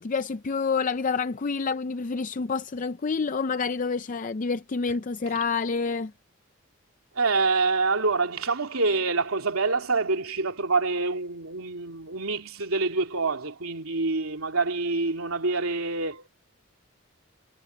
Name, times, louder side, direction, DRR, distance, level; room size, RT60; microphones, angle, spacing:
voice 1, 0.0-6.1, left 5 dB, 40° left, 0.4 m, -28 dB
voice 2, 7.1-16.3, right 3 dB, 85° right, 2.9 m, -26 dB
head